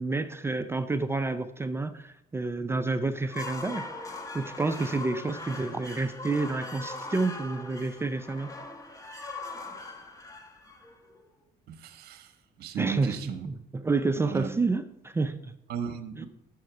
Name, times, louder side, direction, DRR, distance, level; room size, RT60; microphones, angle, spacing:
voice 1, 0.0-8.5 12.8-15.5 16.2-16.3, right 3 dB, 15° right, 0.4 m, -29 dB
sound 1, 3.2-11.3, left 2 dB, 20° left, 0.9 m, -41 dB
voice 2, 11.7-12.3 12.6-13.5 14.2-14.6 15.7-16.3, right 7 dB, 70° right, 0.8 m, -35 dB
6.4 x 6.3 x 4.7 m
cardioid pair, 110°, 17 cm